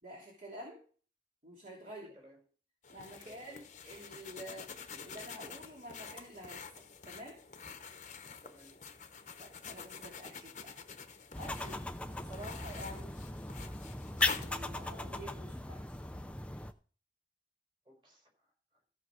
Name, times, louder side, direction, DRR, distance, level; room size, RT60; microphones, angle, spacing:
voice 1, 0.0-0.8 1.4-2.1 2.9-4.7 5.0-7.4 9.4-10.8 11.4-11.8 12.1-13.2 14.4-15.8, equal, 45° right, -3 dB, 2.8 m, -49 dB
voice 2, 1.8-2.4 3.1-3.6 8.4-8.8 15.0-15.1 17.8-18.8, equal, 30° right, 2 dB, 4.9 m, -60 dB
sound 1, 2.8-15.2, left 5 dB, 40° left, 1.0 m, -48 dB
sound 2, 11.3-16.7, left 2 dB, 5° left, 0.6 m, -38 dB
15.0 x 6.3 x 5.0 m, 0.40 s
head